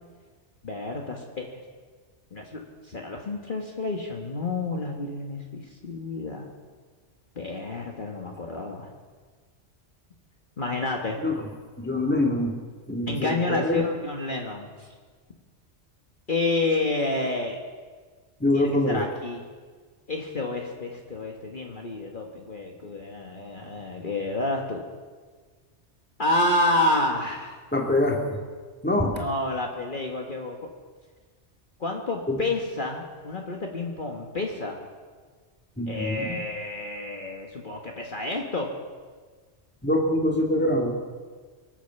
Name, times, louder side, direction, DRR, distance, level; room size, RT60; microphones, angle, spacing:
voice 1, 0.6-1.6 2.3-2.6 2.9-6.5 7.3-8.9 10.6-11.2 13.1-14.9 16.3-17.6 18.5-19.5 20.1-24.8 26.2-27.6 29.1-30.6 31.8-34.8 35.9-38.7, left 2 dB, 45° left, 1 dB, 1.6 m, -29 dB
voice 2, 11.8-12.6 12.9-13.8 18.4-19.0 27.7-28.4 28.8-29.2 32.3-32.4 35.8-36.4 39.8-41.0, left 1 dB, 10° left, 1 dB, 2.1 m, -24 dB
23.5 x 8.6 x 6.9 m, 1.5 s
omnidirectional pair, 1.2 m